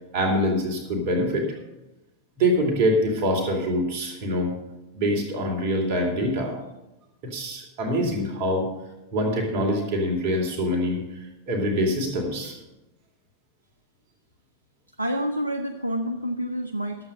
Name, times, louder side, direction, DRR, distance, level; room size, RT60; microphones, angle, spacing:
voice 1, 0.1-1.5 2.4-4.5 4.9-6.5 7.2-8.7 9.1-11.0 11.5-12.6, equal, 45° right, 2 dB, 2.5 m, -24 dB
voice 2, 15.0-17.1, equal, 85° right, 4 dB, 0.7 m, -28 dB
12.0 x 7.9 x 5.5 m, 0.96 s
figure-of-eight pair, 90°, 0 cm